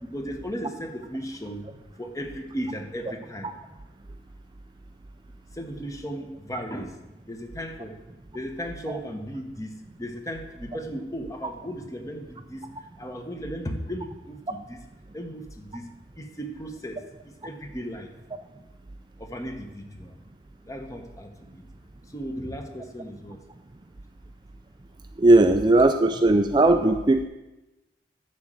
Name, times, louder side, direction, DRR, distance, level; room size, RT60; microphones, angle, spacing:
voice 1, 0.0-1.7 2.0-3.5 5.5-7.0 7.3-8.0 8.3-14.8 15.1-15.9 16.2-18.1 19.2-20.1 20.7-21.6 22.1-23.4, equal, 20° left, 5 dB, 1.0 m, -36 dB
voice 2, 25.2-27.2, right 2 dB, 25° right, 7 dB, 0.4 m, -18 dB
10.5 x 5.0 x 7.4 m, 1.0 s
head